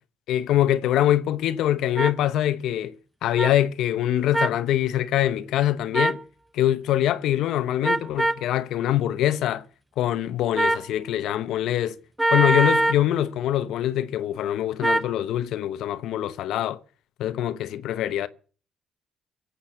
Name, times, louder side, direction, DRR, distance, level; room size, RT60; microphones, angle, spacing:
voice 1, 0.3-3.0 3.2-6.2 6.5-9.6 10.0-12.0 12.3-16.8 17.2-18.3, left 12 dB, 85° left, 0.9 m, -24 dB
sound 1, 2.0-2.1 3.4-3.5 4.3-4.6 5.9-6.2 7.8-8.4 10.6-10.9 12.2-13.0 14.8-15.1, right 1 dB, 10° right, 0.8 m, -22 dB
22.5 x 8.5 x 7.2 m
cardioid pair, 90°, 0 cm